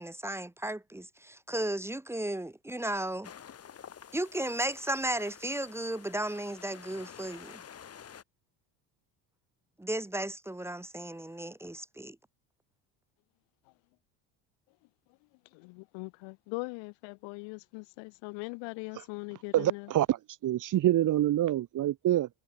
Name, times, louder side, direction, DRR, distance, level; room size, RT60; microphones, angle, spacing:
voice 1, 0.0-3.3 4.1-7.6 9.8-12.2, right 1 dB, 5° right, 1.4 m, -34 dB
sound 1, 3.2-8.2, left 8 dB, 35° left, 4.9 m, -50 dB
voice 2, 15.5-19.9, left 31 dB, 80° left, 2.6 m, -41 dB
voice 3, 19.5-20.2 20.4-22.3, right 13 dB, 45° right, 1.5 m, -26 dB
cardioid pair, 130°, 43 cm